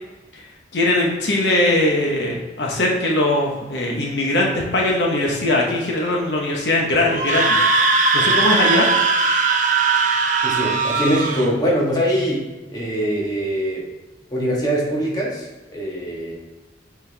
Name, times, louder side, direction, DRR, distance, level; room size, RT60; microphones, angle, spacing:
voice 1, 0.7-7.6 8.1-8.9, left 1 dB, 65° left, -2 dB, 1.1 m, -20 dB
Screaming, 7.1-11.5, right 4 dB, 45° right, 0.7 m, -19 dB
voice 2, 10.4-13.9 14.3-16.3, equal, 20° left, -3 dB, 1.4 m, -23 dB
7.1 x 4.5 x 3.4 m, 1.2 s
head